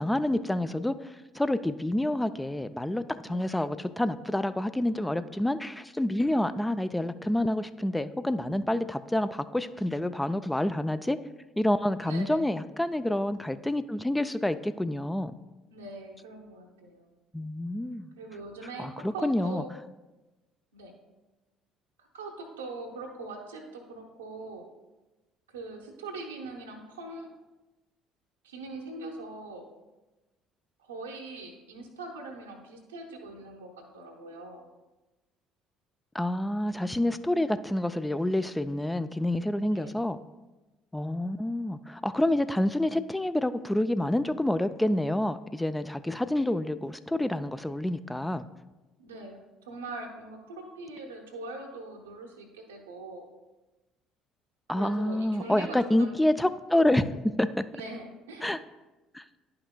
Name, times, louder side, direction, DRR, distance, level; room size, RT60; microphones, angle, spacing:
voice 1, 0.0-11.2 11.6-15.3 17.3-18.1 18.8-19.6 36.1-40.2 40.9-48.5 54.7-57.5 58.4-58.6 59.1-59.2, left 1 dB, 10° left, 11 dB, 0.3 m, -28 dB
voice 2, 12.0-12.4 15.7-17.1 18.2-19.7 20.7-20.9 22.0-24.6 25.5-27.3 28.4-29.6 30.8-34.6 39.6-39.9 49.0-53.2 54.7-56.2 57.7-58.5, right 2 dB, 85° right, 1 dB, 0.9 m, -42 dB
10.5 x 5.8 x 2.2 m, 1.1 s
figure-of-eight pair, 55°, 0 cm